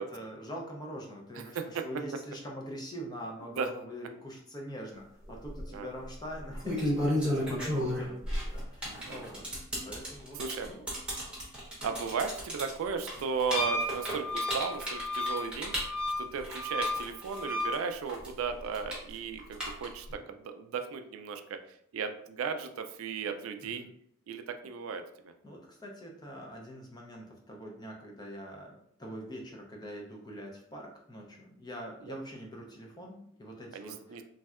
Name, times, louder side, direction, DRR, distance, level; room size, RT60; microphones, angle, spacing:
voice 1, 0.0-10.4 10.7-10.9 23.6-23.9 25.4-34.2, equal, 20° left, 0 dB, 0.5 m, -44 dB
voice 2, 1.5-1.9 3.5-3.7 5.7-5.9 8.9-9.2 10.4-10.7 11.8-15.9 16.2-21.6 21.9-23.8 24.3-25.3 32.1-32.2 33.7-34.2, right 6 dB, 75° right, 7 dB, 0.3 m, -36 dB
sound 1, 5.3-5.6 6.4-17.7 18.1-20.1, equal, 5° right, 0.8 m, -33 dB
Wind instrument woodwind instrument, 13.5-17.8, left 1 dB, 80° left, 0.6 m, -34 dB
3.2 x 2.6 x 2.4 m, 0.69 s
head